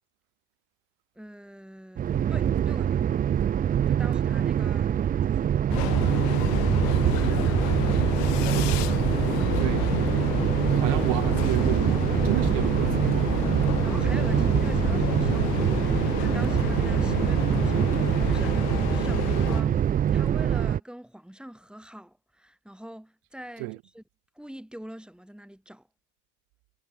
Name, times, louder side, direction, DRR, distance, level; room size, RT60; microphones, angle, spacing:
voice 1, 1.2-3.0 3.9-6.2 6.9-8.0 13.8-24.0 24.4-25.9, equal, ahead, 7.1 m, -44 dB
sound 1, 2.0-20.8, right 9 dB, 20° right, 0.3 m, -24 dB
Train, 5.7-19.6, left 33 dB, 80° left, 1.0 m, -31 dB
voice 2, 6.0-6.3 8.5-8.8 9.6-9.9 10.7-13.3 17.1-17.3 19.2-19.3 23.6-23.8, right 30 dB, 75° right, 2.4 m, -32 dB
Fireworks, 8.1-9.0 9.4-10.0 10.2-10.3 10.6-10.7 10.9-11.0 11.3-12.9, left 17 dB, 60° left, 6.2 m, -39 dB
supercardioid pair, 95°, 46 cm